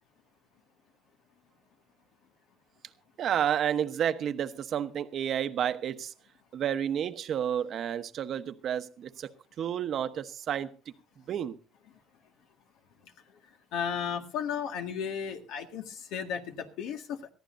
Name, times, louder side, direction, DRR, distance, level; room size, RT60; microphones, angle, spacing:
voice 1, 3.2-6.1 6.5-9.3 9.6-10.7 11.3-11.6, right 9 dB, 55° right, 1.0 m, -30 dB
voice 2, 13.7-17.3, left 7 dB, 75° left, 1.9 m, -34 dB
21.0 x 14.5 x 2.7 m
supercardioid pair, 90°, 0 cm